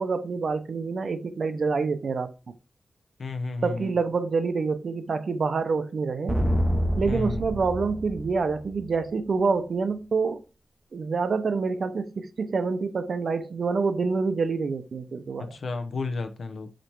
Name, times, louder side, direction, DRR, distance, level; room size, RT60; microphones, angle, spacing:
voice 1, 0.0-2.3 3.6-6.4 7.0-10.4 10.9-15.5, right 4 dB, 60° right, 0.7 m, -27 dB
voice 2, 3.2-3.9 7.1-7.4 15.4-16.7, left 3 dB, 70° left, 0.8 m, -32 dB
sound 1, 6.3-9.0, equal, 5° right, 0.7 m, -27 dB
5.1 x 4.3 x 4.5 m
wide cardioid pair, 170°, 0 cm